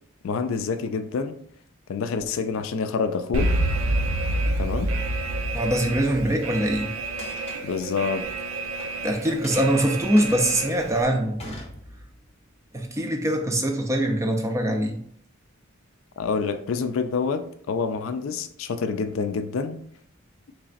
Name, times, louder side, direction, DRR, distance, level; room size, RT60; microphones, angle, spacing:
voice 1, 0.2-1.4 1.9-3.5 4.6-4.9 7.6-8.2 16.2-19.8, left 5 dB, 70° left, 9 dB, 0.4 m, -27 dB
Alarm, 3.3-11.0, right 2 dB, 75° right, 0.4 m, -28 dB
voice 2, 5.5-6.9 9.0-11.5 12.7-15.0, right 1 dB, 15° right, 4 dB, 0.4 m, -23 dB
sound 1, 7.2-8.9 9.2-12.3, left 1 dB, 30° left, 0.7 m, -42 dB
3.9 x 3.2 x 2.5 m, 0.64 s
head